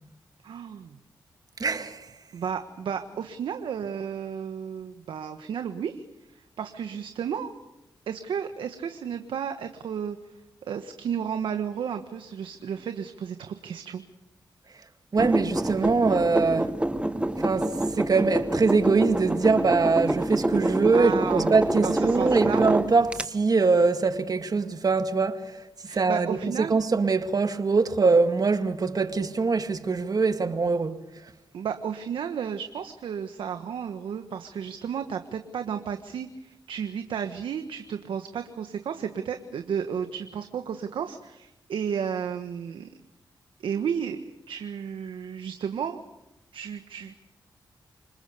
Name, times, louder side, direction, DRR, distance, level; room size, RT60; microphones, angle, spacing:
voice 1, 0.4-1.0 2.3-6.0 6.6-7.5 8.1-10.2 10.7-14.0 20.6-21.5 21.8-22.6 25.8-26.7 31.5-42.9 43.6-46.0 46.5-47.2, right 7 dB, 80° right, 1.4 m, -33 dB
voice 2, 1.6-2.1 15.1-16.7 17.4-25.5 25.9-31.0, right 4 dB, 50° right, 2.0 m, -23 dB
sound 1, 15.2-23.2, right 1 dB, 15° right, 1.6 m, -27 dB
27.0 x 20.5 x 6.8 m
cardioid pair, 50°, 8 cm